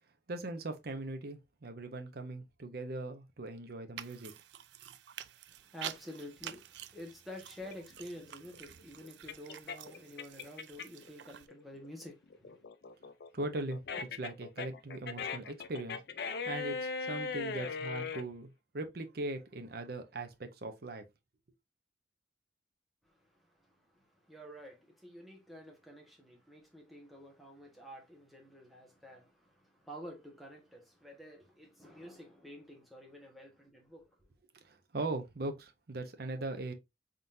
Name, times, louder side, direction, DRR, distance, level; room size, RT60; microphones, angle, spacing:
voice 1, 0.3-4.3 13.3-16.0 16.5-21.0 34.6-36.7, right 2 dB, 60° right, 0.8 m, -40 dB
sound 1, 4.0-11.5, right 10 dB, 75° right, 0.4 m, -48 dB
voice 2, 5.5-12.6 23.0-34.1, equal, ahead, 1.3 m, -50 dB
sound 2, 7.7-11.1 11.5-18.2, left 5 dB, 60° left, 0.5 m, -39 dB
4.1 x 3.7 x 2.6 m
head